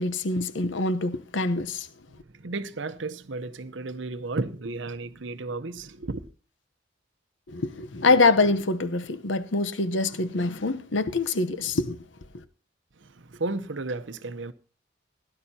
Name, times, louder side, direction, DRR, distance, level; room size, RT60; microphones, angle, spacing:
voice 1, 0.0-1.9 7.5-12.0, left 3 dB, 75° left, 0.9 m, -25 dB
voice 2, 2.1-6.3 13.0-14.5, right 3 dB, 75° right, 0.8 m, -33 dB
17.0 x 11.0 x 2.8 m
head